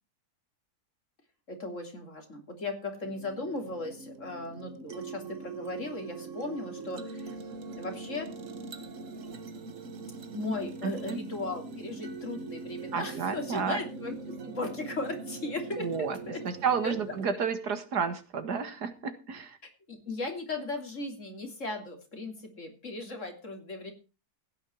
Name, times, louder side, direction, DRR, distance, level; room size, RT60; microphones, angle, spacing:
voice 1, 1.5-7.4 7.8-8.3 10.3-14.2 14.4-16.4 16.8-16.9 19.9-23.9, left 2 dB, 50° left, 4 dB, 3.5 m, -37 dB
sound 1, 3.0-17.3, right 3 dB, 55° right, 1.7 m, -42 dB
voice 2, 10.8-11.2 12.9-13.8 15.8-16.2 16.4-19.6, right 6 dB, 90° right, 10 dB, 2.3 m, -31 dB
16.0 x 10.0 x 4.6 m, 0.32 s
omnidirectional pair, 1.7 m